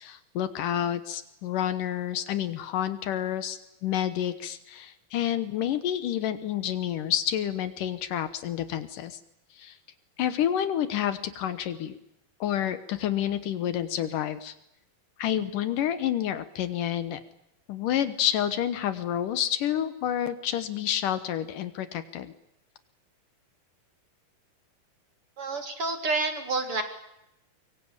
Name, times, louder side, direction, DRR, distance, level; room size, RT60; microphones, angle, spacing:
voice 1, 0.0-9.2 9.5-9.8 10.2-12.0 12.4-14.5 15.2-17.2 17.7-22.3, left 10 dB, 70° left, 12 dB, 2.5 m, -29 dB
voice 2, 25.4-26.8, right 3 dB, 45° right, 7 dB, 2.4 m, -29 dB
23.5 x 23.0 x 8.9 m, 0.85 s
omnidirectional pair, 4.2 m